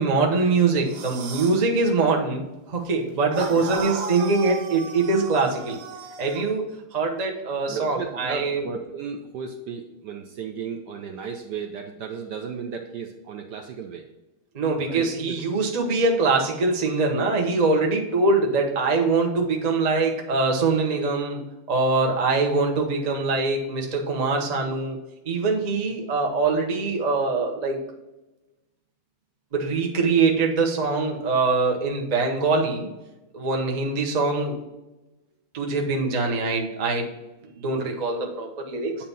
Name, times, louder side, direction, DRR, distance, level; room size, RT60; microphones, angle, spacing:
voice 1, 0.0-5.8 6.2-6.6 6.9-8.7 14.5-21.4 21.7-25.0 25.2-27.8 29.5-32.9 33.3-34.6 35.5-37.1 37.6-39.0, right 3 dB, 50° right, 0 dB, 0.5 m, -23 dB
sound 1, 0.8-1.7 3.3-6.5, right 6 dB, 85° right, 0.7 m, -35 dB
voice 2, 3.3-3.7 7.7-14.0 14.8-15.4 17.8-17.9, right 6 dB, 70° right, 3 dB, 1.0 m, -34 dB
8.5 x 2.9 x 5.3 m, 1.0 s
omnidirectional pair, 2.4 m